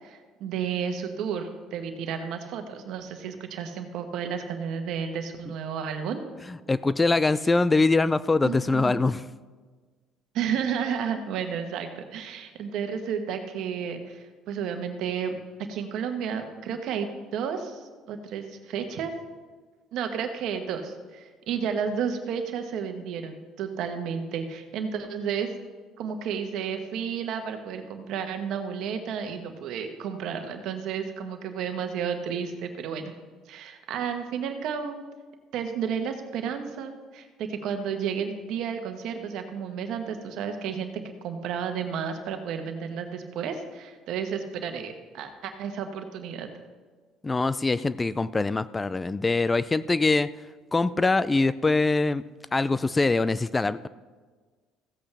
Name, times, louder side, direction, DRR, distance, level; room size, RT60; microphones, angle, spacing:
voice 1, 0.0-6.2 8.4-9.0 10.3-15.4 15.7-19.1 19.9-25.5 26.0-33.1 33.5-35.0 35.5-40.9 41.2-46.5, right 7 dB, 70° right, 6 dB, 1.2 m, -32 dB
voice 2, 6.7-9.2 47.2-50.3 50.7-52.2 52.5-53.9, left 3 dB, 20° left, 16 dB, 0.3 m, -23 dB
15.5 x 8.1 x 3.4 m, 1.4 s
supercardioid pair, 85°, 0 cm